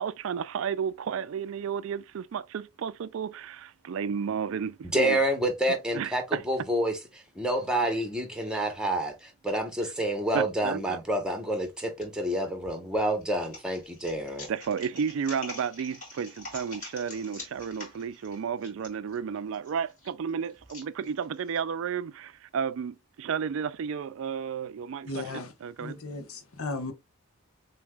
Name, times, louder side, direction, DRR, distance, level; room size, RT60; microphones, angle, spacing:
voice 1, 0.0-5.2 5.9-6.4 10.3-11.0 14.5-26.0, right 7 dB, 60° right, 0.3 m, -32 dB
voice 2, 4.9-14.5, right 1 dB, 5° right, 1.0 m, -28 dB
sound 1, 11.5-12.0 12.6-21.6, left 2 dB, 35° left, 3.1 m, -45 dB
voice 3, 25.1-25.5 25.8-26.9, left 3 dB, 75° left, 1.1 m, -35 dB
7.1 x 2.8 x 2.3 m
head